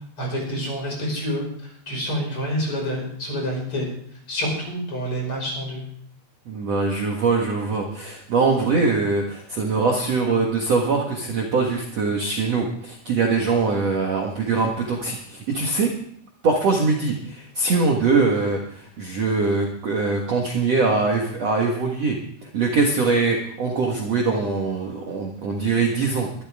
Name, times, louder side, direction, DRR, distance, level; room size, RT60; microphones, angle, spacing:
voice 1, 0.2-3.9 4.3-5.8, equal, 25° left, -1 dB, 6.3 m, -28 dB
voice 2, 6.4-15.9 16.4-22.2 22.5-26.3, right 4 dB, 70° right, 0 dB, 1.5 m, -22 dB
23.5 x 12.5 x 3.7 m, 0.63 s
omnidirectional pair, 5.7 m